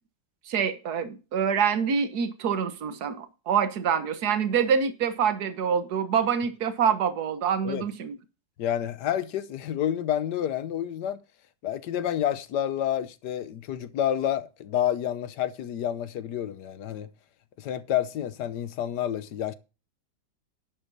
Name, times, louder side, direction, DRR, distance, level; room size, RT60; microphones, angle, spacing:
voice 1, 0.5-8.2, right 7 dB, 60° right, 1.7 m, -26 dB
voice 2, 8.6-11.2 11.6-17.1 17.6-19.5, left 10 dB, 70° left, 1.4 m, -29 dB
11.0 x 8.1 x 4.0 m
omnidirectional pair, 2.0 m